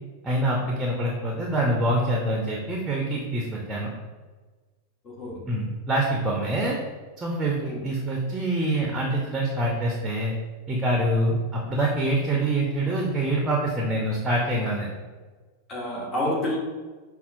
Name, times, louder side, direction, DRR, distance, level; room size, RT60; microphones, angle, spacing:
voice 1, 0.2-3.9 5.5-6.8 7.2-7.6 7.8-10.3 10.7-14.9, right 1 dB, 15° right, -2 dB, 0.6 m, -25 dB
voice 2, 5.0-5.4 7.6-7.9 15.7-16.6, left 1 dB, 25° left, -4 dB, 1.1 m, -29 dB
5.4 x 2.3 x 2.6 m, 1.3 s
figure-of-eight pair, 90°, 0 cm